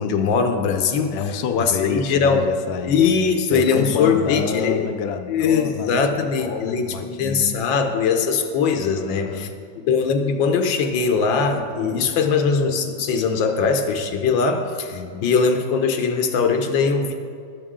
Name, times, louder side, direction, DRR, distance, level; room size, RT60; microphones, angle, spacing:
voice 1, 0.0-1.2 1.5-2.5 2.9-4.9 5.3-9.5 9.8-17.1, left 5 dB, 85° left, 5 dB, 1.6 m, -21 dB
voice 2, 1.1-7.7 8.9-9.5 14.9-15.3, left 7 dB, 65° left, 6 dB, 1.0 m, -29 dB
18.0 x 6.6 x 3.7 m, 2.2 s
omnidirectional pair, 2.0 m